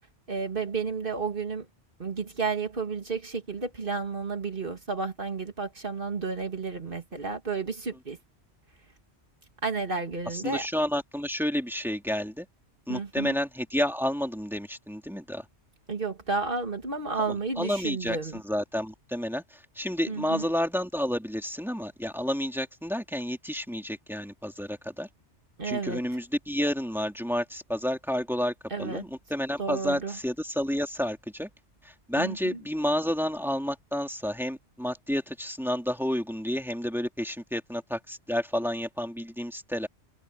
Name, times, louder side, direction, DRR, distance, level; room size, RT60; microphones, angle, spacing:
voice 1, 0.3-1.7 2.0-8.2 9.6-10.7 12.9-13.4 15.9-18.4 20.1-20.5 25.6-26.1 28.7-29.1 29.6-30.2 32.2-32.6, right 4 dB, 50° right, 2.2 m, -32 dB
voice 2, 10.4-12.5 12.9-15.5 17.6-25.1 25.7-28.5 28.8-31.5 31.8-39.9, equal, ahead, 2.4 m, -30 dB
omnidirectional pair, 1.2 m